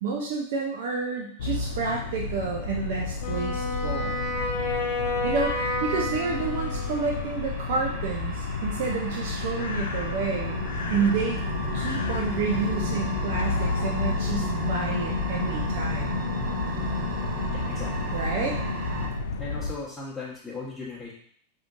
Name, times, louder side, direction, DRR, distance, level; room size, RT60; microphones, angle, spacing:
voice 1, 0.0-4.2 5.2-10.6 10.9-11.5 11.7-16.2 18.1-18.6, right 5 dB, 50° right, -1 dB, 0.6 m, -30 dB
sound 1, 1.4-19.7, left 4 dB, 60° left, 0.3 m, -32 dB
Wind instrument woodwind instrument, 3.2-7.4, left 2 dB, 45° left, 0.9 m, -30 dB
sound 2, 6.2-19.1, equal, 35° right, 1.5 m, -33 dB
voice 2, 17.4-18.1 19.4-21.1, left 3 dB, 5° left, -11 dB, 1.1 m, -38 dB
5.6 x 2.7 x 2.5 m, 0.63 s
figure-of-eight pair, 90°, 0 cm